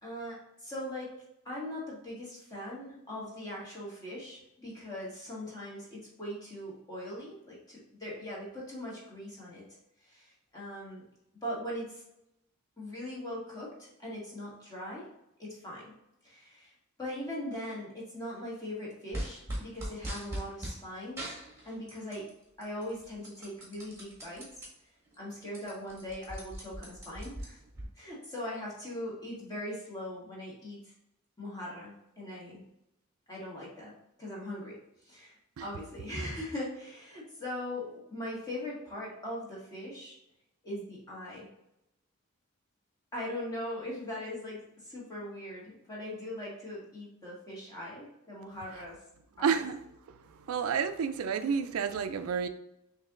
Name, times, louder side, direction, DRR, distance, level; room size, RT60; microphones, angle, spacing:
voice 1, 0.0-1.1 1.4-9.6 10.0-11.0 11.4-12.0 12.8-15.1 15.4-15.9 16.2-16.7 17.0-21.4 21.6-22.3 22.6-24.5 25.2-27.6 28.0-30.8 31.4-32.6 33.3-33.9 34.2-34.8 35.0-40.2 40.6-41.5 43.1-49.0 49.4-49.6, left 1 dB, 20° left, -6 dB, 1.6 m, -40 dB
sound 1, 19.1-20.8 21.2-22.3 22.6-24.7 25.1-25.2 25.4-27.8, right 1 dB, 15° right, 1.4 m, -40 dB
voice 2, 49.4-49.8 50.5-52.5, right 6 dB, 85° right, 9 dB, 0.4 m, -30 dB
6.6 x 2.9 x 2.5 m, 0.84 s
head